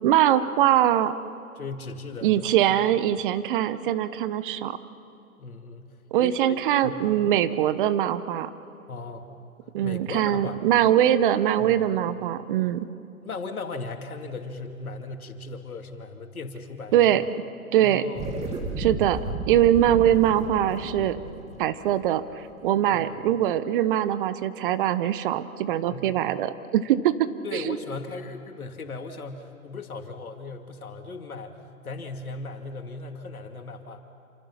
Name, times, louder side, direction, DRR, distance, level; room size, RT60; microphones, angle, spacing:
voice 1, 0.0-1.1 2.2-4.8 6.1-8.5 9.7-12.9 16.9-17.2 17.7-18.0 18.8-21.2 21.6-22.2 22.6-27.8, right 11 dB, 35° right, 14 dB, 1.0 m, -22 dB
voice 2, 1.6-2.8 5.4-5.9 6.2-6.6 6.8-7.2 8.9-9.3 9.8-10.6 11.6-11.8 13.2-16.9 17.8-18.3 22.9-23.1 25.9-26.2 27.4-31.6 31.8-34.0, left 3 dB, 75° left, 5 dB, 2.6 m, -37 dB
sound 1, 18.1-22.8, right 2 dB, 15° right, 2.6 m, -34 dB
28.5 x 27.0 x 5.8 m, 2.7 s
figure-of-eight pair, 125°, 43 cm